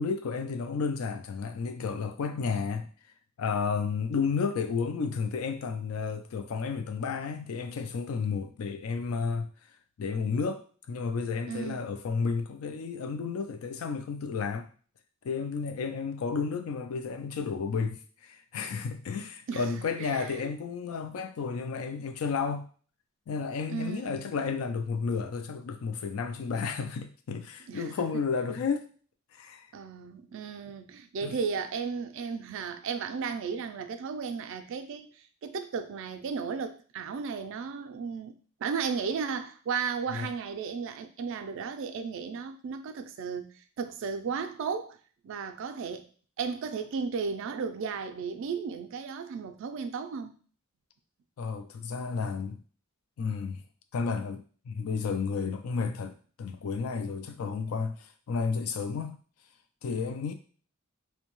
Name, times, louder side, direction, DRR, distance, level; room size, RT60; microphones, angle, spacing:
voice 1, 0.0-2.9 3.4-9.5 10.0-14.7 15.2-22.6 23.3-28.9 29.3-29.7 31.2-31.4 40.1-40.3 51.4-52.6 53.2-53.6 53.9-56.1 56.4-59.2 59.8-60.3, left 5 dB, 80° left, 0.4 m, -32 dB
voice 2, 11.5-11.9 19.5-20.5 23.7-24.4 27.7-28.2 29.7-35.1 35.4-38.4 38.6-45.0 45.2-46.1 46.4-50.3, right 5 dB, 65° right, 0.3 m, -35 dB
2.6 x 2.2 x 2.9 m
head